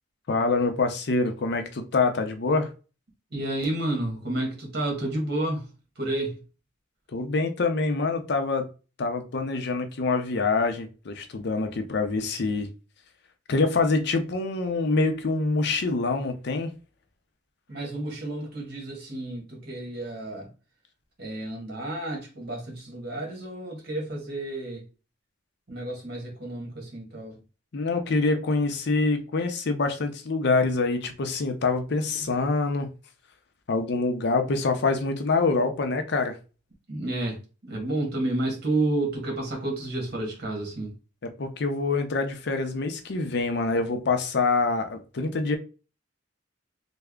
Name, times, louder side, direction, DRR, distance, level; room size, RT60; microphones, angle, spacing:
voice 1, 0.3-2.7 7.1-8.7 9.0-12.7 13.5-16.7 27.7-32.9 33.7-36.3 41.4-45.6, left 3 dB, 60° left, 0.5 m, -25 dB
voice 2, 3.3-5.7 6.0-6.4 17.7-20.5 21.2-24.8 25.7-27.4 36.9-40.9, right 2 dB, 55° right, 1.4 m, -31 dB
3.3 x 2.1 x 3.5 m
head